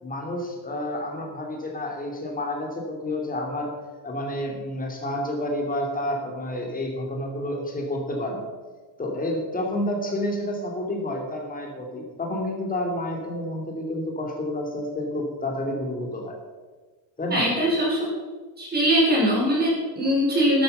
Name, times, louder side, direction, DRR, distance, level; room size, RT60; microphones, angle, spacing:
voice 1, 0.0-3.7 4.0-8.5 9.0-16.4 17.2-17.5, left 1 dB, 15° left, 1 dB, 2.8 m, -29 dB
voice 2, 17.3-18.0 18.6-20.6, equal, 20° right, -4 dB, 4.9 m, -21 dB
13.0 x 12.0 x 5.6 m, 1.3 s
cardioid pair, 165°, 47 cm